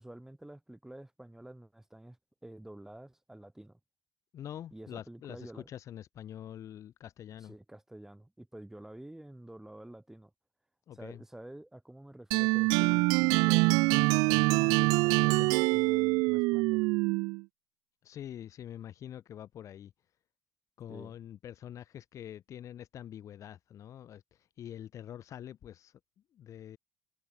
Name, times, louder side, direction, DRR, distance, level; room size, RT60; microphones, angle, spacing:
voice 1, 0.0-3.8 4.7-5.7 7.5-10.3 10.9-16.9 20.9-21.1, right 1 dB, 5° right, 4.3 m, -49 dB
voice 2, 4.3-7.5 10.9-11.2 18.0-19.9 20.8-26.0 26.3-26.8, left 10 dB, 50° left, 4.5 m, -45 dB
sound 1, 12.3-17.4, right 28 dB, 85° right, 0.5 m, -25 dB
supercardioid pair, 100°, 7 cm